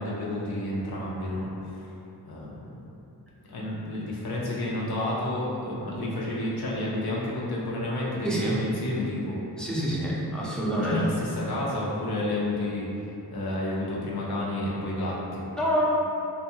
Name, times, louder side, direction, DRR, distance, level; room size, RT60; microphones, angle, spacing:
voice 1, 0.0-1.9 2.3-2.9 3.5-9.4 10.8-12.9 13.3-15.5, left 1 dB, 70° left, -5 dB, 0.6 m, -30 dB
voice 2, 8.2-8.6 9.6-11.1 15.6-15.9, equal, ahead, -7 dB, 0.5 m, -26 dB
2.5 x 2.2 x 2.8 m, 2.8 s
wide cardioid pair, 60°, 39 cm